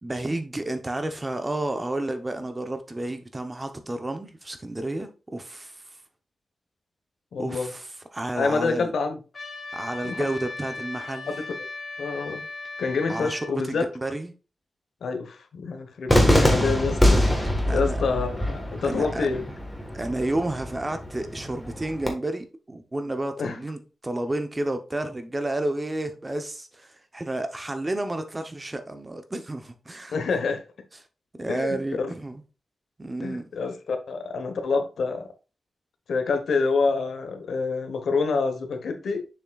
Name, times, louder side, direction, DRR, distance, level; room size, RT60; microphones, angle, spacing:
voice 1, 0.0-5.8 7.4-8.9 9.7-11.3 13.1-14.3 17.7-18.0 18.8-19.3 19.9-30.2 31.4-32.4 33.0-33.5, right 1 dB, 20° right, 0.7 m, -31 dB
voice 2, 7.3-7.7 8.4-9.2 10.1-10.3 11.3-11.4 12.0-12.4 12.8-13.8 15.0-17.2 17.7-19.4 23.4-23.6 30.1-30.6 31.5-32.1 33.2-35.3 36.1-39.2, left 4 dB, 80° left, 1.1 m, -27 dB
Trumpet, 9.3-13.5, left 3 dB, 35° left, 2.4 m, -37 dB
Cheering / Fireworks, 16.1-22.1, left 1 dB, 10° left, 1.4 m, -24 dB
7.0 x 6.0 x 2.3 m
wide cardioid pair, 165°, 0 cm